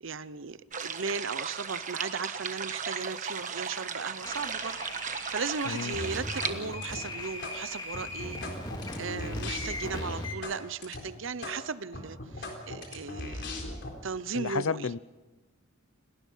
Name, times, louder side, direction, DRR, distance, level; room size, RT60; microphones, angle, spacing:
voice 1, 0.0-4.8 5.1-8.5 9.0-13.4 14.0-14.9, right 5 dB, 60° right, 16 dB, 0.8 m, -36 dB
sound 1, 0.7-6.5, right 6 dB, 35° right, 1.3 m, -36 dB
sound 2, 4.2-10.4, left 2 dB, 20° left, 2.6 m, -39 dB
sound 3, 5.9-6.6 6.8-7.6 7.9-10.6 10.8-11.0 11.4-11.6 11.9-13.9, left 2 dB, 55° left, 4.1 m, -38 dB
voice 2, 14.4-15.0, left 5 dB, 75° left, 18 dB, 0.6 m, -31 dB
29.0 x 19.0 x 5.6 m, 1.1 s
head